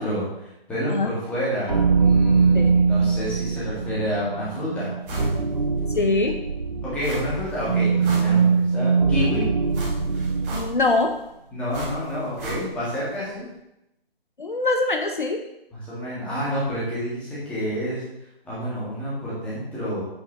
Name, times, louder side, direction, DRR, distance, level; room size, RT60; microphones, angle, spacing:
voice 1, 0.0-4.9 5.9-6.3 6.8-9.4 11.5-13.4 15.7-18.0 18.4-20.0, equal, 5° left, -9 dB, 1.9 m, -29 dB
sound 1, 1.7-10.9, right 5 dB, 45° right, 0.8 m, -22 dB
sound 2, 5.0-5.4 5.8-5.9 7.0-7.5 7.8-8.8 9.7-11.0 11.7-13.0 13.2-13.3, right 1 dB, 15° right, 2.2 m, -34 dB
voice 2, 5.9-6.4 10.5-11.2 14.4-15.4, left 2 dB, 55° left, 5 dB, 0.9 m, -23 dB
10.0 x 8.5 x 3.1 m, 0.86 s
figure-of-eight pair, 150°, 30 cm